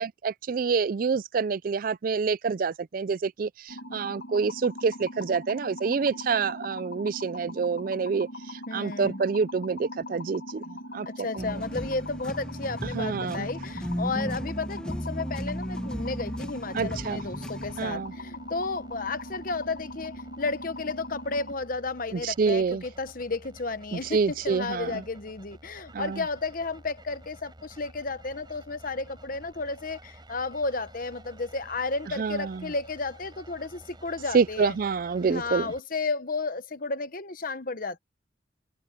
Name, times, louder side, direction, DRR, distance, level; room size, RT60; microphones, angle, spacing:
voice 1, 0.0-11.1 11.4-11.6 12.9-13.5 16.7-17.2 17.8-18.1 22.1-22.8 23.9-25.0 25.9-26.2 32.2-32.7 34.3-35.7, right 5 dB, 45° right, 0.4 m, -27 dB
sound 1, 3.7-21.5, left 1 dB, 65° left, 2.0 m, -41 dB
voice 2, 8.7-9.2 11.0-34.7 35.2-38.0, left 3 dB, 45° left, 1.1 m, -33 dB
sound 2, 11.4-17.9, equal, 5° left, 1.5 m, -35 dB
sound 3, 17.6-35.8, right 1 dB, 25° right, 5.7 m, -51 dB
head